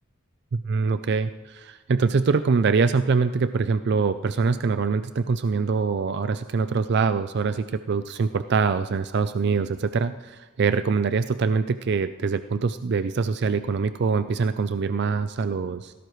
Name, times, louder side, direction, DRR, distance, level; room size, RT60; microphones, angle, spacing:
voice 1, 0.5-15.9, right 5 dB, 50° right, 11 dB, 0.4 m, -24 dB
18.0 x 16.0 x 3.2 m, 1.3 s
head